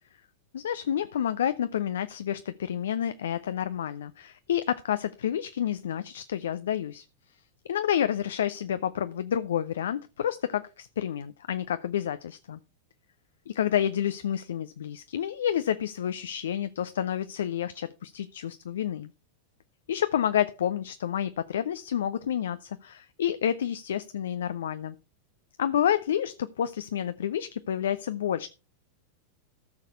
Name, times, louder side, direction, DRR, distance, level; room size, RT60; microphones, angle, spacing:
voice 1, 0.5-7.0 7.6-12.6 13.5-19.1 19.9-25.0 25.6-28.5, left 10 dB, 65° left, 0.6 m, -29 dB
14.0 x 6.6 x 4.5 m
figure-of-eight pair, 90°, 0 cm